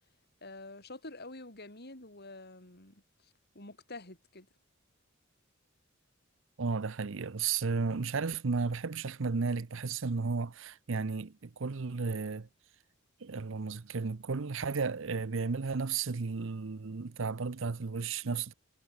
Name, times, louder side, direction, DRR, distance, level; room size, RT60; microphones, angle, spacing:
voice 1, 0.4-4.5, left 2 dB, 50° left, 7.9 m, -48 dB
voice 2, 6.6-12.5 13.2-18.5, right 4 dB, 65° right, 0.7 m, -33 dB
head